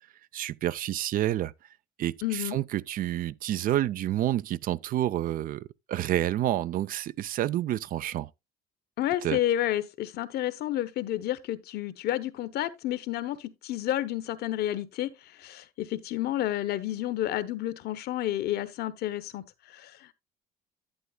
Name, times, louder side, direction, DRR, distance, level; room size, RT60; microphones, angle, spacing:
voice 1, 0.3-1.5 2.0-8.3 9.2-9.4, right 13 dB, 55° right, 0.4 m, -29 dB
voice 2, 2.2-2.6 9.0-20.1, left 13 dB, 70° left, 0.8 m, -30 dB
11.5 x 8.5 x 2.2 m
cardioid pair, 110°, 17 cm